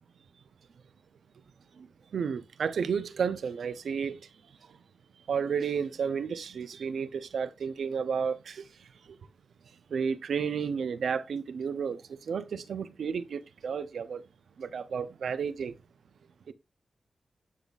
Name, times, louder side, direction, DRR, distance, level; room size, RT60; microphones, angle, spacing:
voice 1, 2.1-4.2 5.3-8.6 9.9-12.0 12.3-14.2 14.6-15.7, right 6 dB, 85° right, 0.5 m, -32 dB
10.5 x 3.9 x 2.3 m
wide cardioid pair, 135°, 0 cm